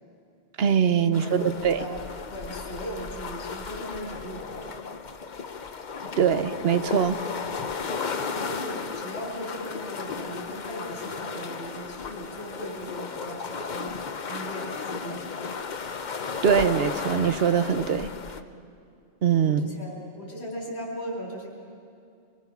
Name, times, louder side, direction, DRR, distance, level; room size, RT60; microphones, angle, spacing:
voice 1, 0.6-1.8 6.2-7.2 16.4-18.1 19.2-19.7, right 7 dB, 70° right, 11 dB, 1.1 m, -22 dB
sound 1, 1.1-18.4, left 5 dB, 50° left, 0.9 m, -35 dB
voice 2, 1.3-2.0 2.3-4.9 8.3-15.5 19.4-21.5, equal, 80° left, -3 dB, 3.8 m, -38 dB
24.5 x 22.0 x 5.9 m, 2.4 s
omnidirectional pair, 1.1 m